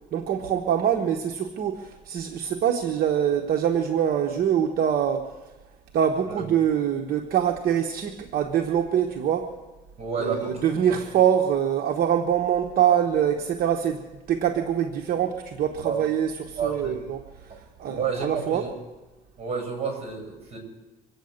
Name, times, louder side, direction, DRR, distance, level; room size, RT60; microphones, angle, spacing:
voice 1, 0.1-5.3 5.9-9.5 10.2-17.5 17.8-18.7, right 9 dB, 60° right, 5 dB, 1.1 m, -24 dB
voice 2, 10.0-11.0 15.8-16.0 16.6-17.0 17.5-17.6 17.9-18.7 19.4-20.6, right 5 dB, 35° right, 3 dB, 7.2 m, -30 dB
25.0 x 8.7 x 6.5 m, 1.1 s
cardioid pair, 110°, 17 cm